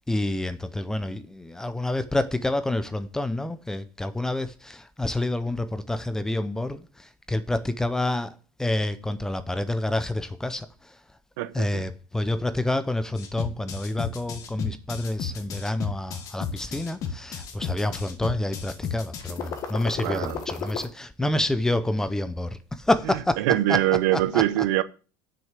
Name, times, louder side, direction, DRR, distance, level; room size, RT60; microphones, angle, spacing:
voice 1, 0.1-11.0 11.5-23.8 24.1-24.6, left 1 dB, 5° left, 0.6 m, -28 dB
voice 2, 11.4-11.8 20.0-20.4 23.4-24.8, right 14 dB, 75° right, 0.8 m, -23 dB
sound 1, 13.1-20.8, left 8 dB, 35° left, 1.5 m, -33 dB
7.7 x 6.5 x 7.5 m
cardioid pair, 160°, 10 cm